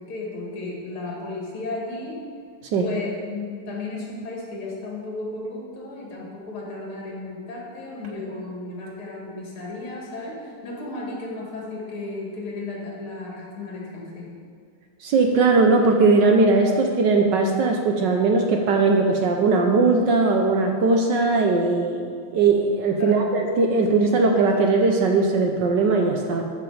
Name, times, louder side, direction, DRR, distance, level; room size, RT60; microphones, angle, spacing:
voice 1, 0.0-2.2 2.8-14.3 23.0-23.3, left 2 dB, 70° left, -3 dB, 2.8 m, -34 dB
voice 2, 15.0-26.4, right 3 dB, 65° right, 3 dB, 1.2 m, -19 dB
14.0 x 5.9 x 5.0 m, 2.1 s
omnidirectional pair, 2.4 m